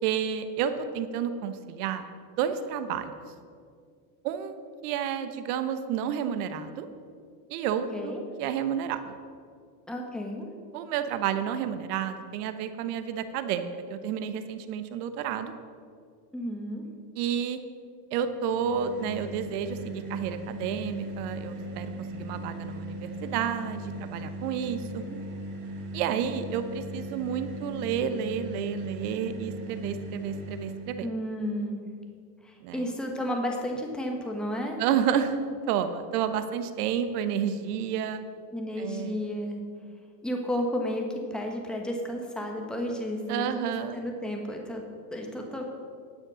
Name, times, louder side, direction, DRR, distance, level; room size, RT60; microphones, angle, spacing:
voice 1, 0.0-2.0 2.4-3.2 4.2-4.6 4.8-6.9 7.5-9.1 10.7-15.5 17.2-17.6 18.1-25.0 25.9-31.1 32.6-32.8 34.8-35.4 35.7-38.2 38.8-39.3 43.3-44.0, right 8 dB, 65° right, 10 dB, 1.1 m, -30 dB
voice 2, 9.9-10.5 16.3-16.8 25.0-25.2 31.0-31.9 32.4-34.8 38.5-39.6 40.2-41.1 41.3-44.8 45.1-45.6, equal, ahead, 1 dB, 1.3 m, -32 dB
sound 1, 18.5-31.1, right 1 dB, 35° right, 2.2 m, -38 dB
10.5 x 7.6 x 6.3 m, 2.2 s
supercardioid pair, 130°, 49 cm